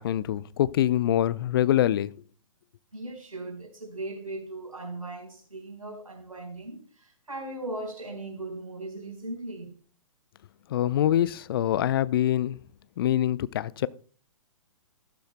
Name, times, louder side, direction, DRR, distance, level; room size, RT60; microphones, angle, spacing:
voice 1, 0.0-2.1 10.7-12.6 13.0-13.9, left 12 dB, 40° left, 0.5 m, -24 dB
voice 2, 2.9-9.7, right 2 dB, 80° right, 4.3 m, -38 dB
13.5 x 12.0 x 2.2 m
figure-of-eight pair, 120°, 18 cm